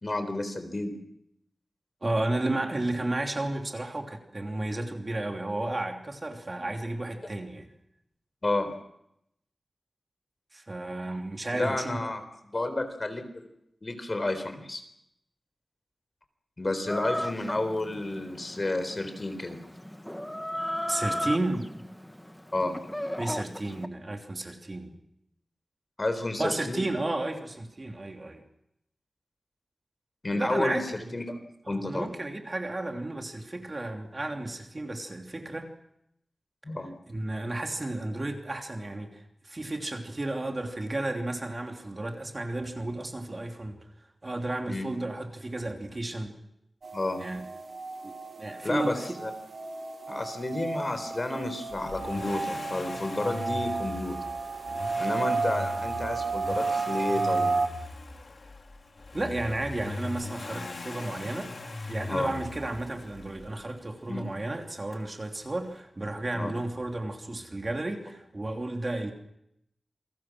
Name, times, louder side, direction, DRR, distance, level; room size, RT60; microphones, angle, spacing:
voice 1, 0.0-0.9 8.4-8.7 11.5-12.2 12.5-13.5 13.8-14.8 16.6-19.6 22.5-22.8 26.0-26.8 30.2-31.4 31.7-32.1 36.6-36.9 44.7-44.9 46.9-47.2 48.6-49.3 50.1-54.2 55.0-57.5 62.1-62.3 64.1-64.3 66.3-66.5, left 2 dB, 35° left, 8 dB, 4.0 m, -31 dB
voice 2, 2.0-7.7 10.5-12.1 20.9-21.7 23.2-24.9 26.4-28.4 30.3-30.8 31.7-35.7 37.1-43.8 44.2-46.3 47.2-47.4 48.0-49.1 59.1-69.1, right 2 dB, 35° right, 3 dB, 3.1 m, -33 dB
Chicken rooster, 16.9-23.9, equal, 10° left, 1.3 m, -35 dB
sound 1, 46.8-57.7, right 4 dB, 65° right, 2.6 m, -32 dB
Accelerating revving vroom, 51.7-63.6 64.9-65.0, left 3 dB, 60° left, 3.0 m, -40 dB
28.5 x 22.5 x 6.2 m, 0.79 s
wide cardioid pair, 90°, 0 cm